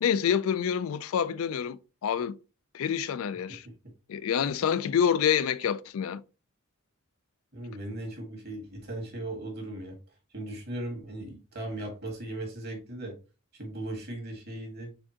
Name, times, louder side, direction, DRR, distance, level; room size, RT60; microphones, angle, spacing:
voice 1, 0.0-2.3 2.7-3.7 4.1-6.2, left 8 dB, 80° left, 0.3 m, -27 dB
voice 2, 7.5-10.0 10.3-13.1 13.5-14.9, right 1 dB, 50° right, 1.6 m, -37 dB
4.2 x 3.7 x 2.8 m
head